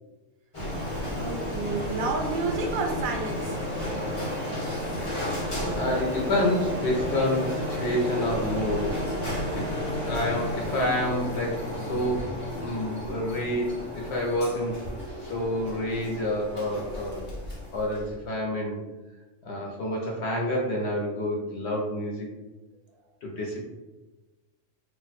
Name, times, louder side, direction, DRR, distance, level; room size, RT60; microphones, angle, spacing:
Printer, 0.5-18.2, equal, 30° left, 0.6 m, -32 dB
voice 1, 1.2-3.6, right 3 dB, 80° right, 2 dB, 1.0 m, -30 dB
voice 2, 5.7-9.0 9.5-12.3 12.6-14.8 15.2-17.2 17.7-18.8 19.4-22.3 23.2-23.7, left 1 dB, 60° left, -2 dB, 0.8 m, -28 dB
2.5 x 2.1 x 4.0 m, 1.1 s
omnidirectional pair, 1.5 m